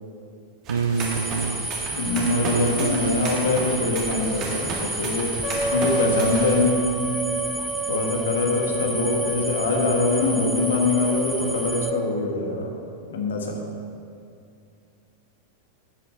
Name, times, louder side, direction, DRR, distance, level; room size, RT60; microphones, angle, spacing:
sound 1, 0.6-6.6, right 3 dB, 35° right, 1.8 m, -33 dB
voice 1, 0.7-1.6 2.3-3.2, right 5 dB, 70° right, 10 dB, 0.5 m, -26 dB
sound 2, 1.0-11.9, right 2 dB, 5° right, 0.4 m, -32 dB
voice 2, 1.9-5.3 5.7-6.9 7.9-12.7 13.1-13.6, left 3 dB, 65° left, 2 dB, 1.5 m, -23 dB
Wind instrument woodwind instrument, 5.4-12.0, right 2 dB, 30° left, 1.1 m, -30 dB
11.5 x 8.7 x 3.9 m, 2.4 s
figure-of-eight pair, 90°, 0 cm